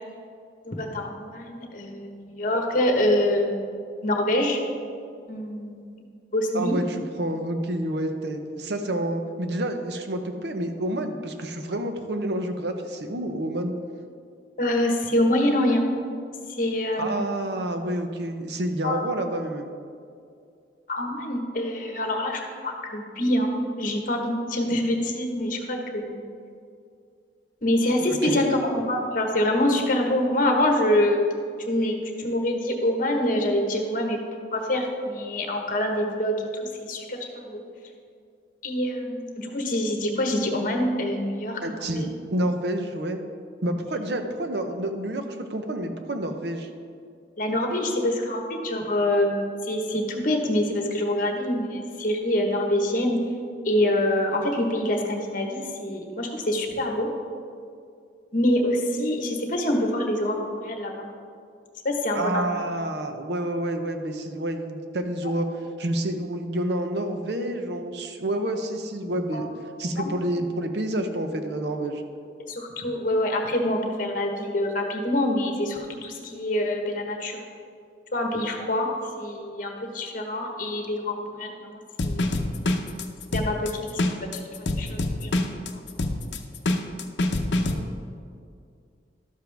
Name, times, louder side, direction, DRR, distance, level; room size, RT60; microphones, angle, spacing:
voice 1, 0.6-4.6 5.3-6.0 6.3-6.7 14.6-15.9 16.6-17.2 18.8-19.0 20.9-26.2 27.6-31.2 31.6-34.2 34.5-37.6 38.6-42.1 47.4-53.2 53.6-57.1 58.3-61.1 61.8-62.5 65.2-65.3 69.3-69.5 70.0-70.1 72.5-77.4 78.1-78.9 79.2-82.4 83.3-85.8 87.6-87.7, left 1 dB, 50° left, 2 dB, 1.2 m, -26 dB
voice 2, 6.5-13.7 17.0-19.7 28.2-28.4 41.6-43.2 43.6-46.7 62.1-65.5 65.8-69.5 69.8-72.0 87.7-87.9, right 1 dB, 65° right, 6 dB, 0.8 m, -29 dB
sound 1, 82.0-87.7, left 2 dB, 75° left, 0.7 m, -25 dB
12.0 x 7.1 x 3.4 m, 2.3 s
head